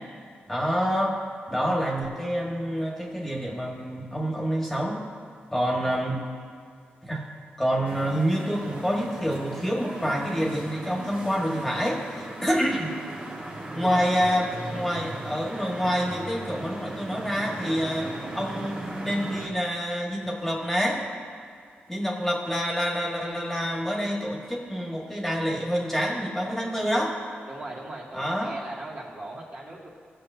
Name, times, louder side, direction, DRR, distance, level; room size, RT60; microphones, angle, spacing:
voice 1, 0.5-1.2 1.5-5.0 5.5-6.2 7.0-7.3 7.6-12.9 13.7-18.1 18.4-21.0 21.9-27.2 28.1-28.7, equal, 10° left, -2 dB, 1.7 m, -27 dB
sound 1, 7.8-19.5, right 1 dB, 35° right, 1.7 m, -38 dB
voice 2, 27.5-29.9, right 2 dB, 50° right, -6 dB, 2.4 m, -38 dB
17.5 x 6.8 x 2.8 m, 2.2 s
cardioid pair, 70°, 4 cm